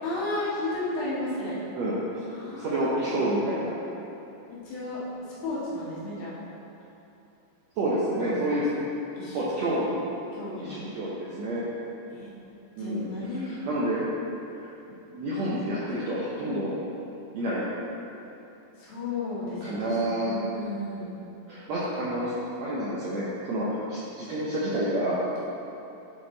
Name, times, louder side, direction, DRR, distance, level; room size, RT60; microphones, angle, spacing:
voice 1, 0.0-1.6 2.3-3.4 4.7-5.0 5.4-6.3 8.2-8.4 9.2-9.4 10.3-10.8 12.1-12.3 12.8-13.4 18.8-19.9 20.2-21.2, left 2 dB, 85° left, -9 dB, 3.4 m, -33 dB
voice 2, 1.7-2.2 2.5-3.7 7.8-8.7 9.3-10.0 10.6-11.6 12.8-13.1 13.4-14.0 14.6-14.7 15.1-16.7 17.3-17.6 19.6-20.3 21.5-25.2, right 1 dB, 75° right, -8 dB, 1.6 m, -29 dB
10.0 x 3.8 x 3.8 m, 2.9 s
omnidirectional pair, 3.9 m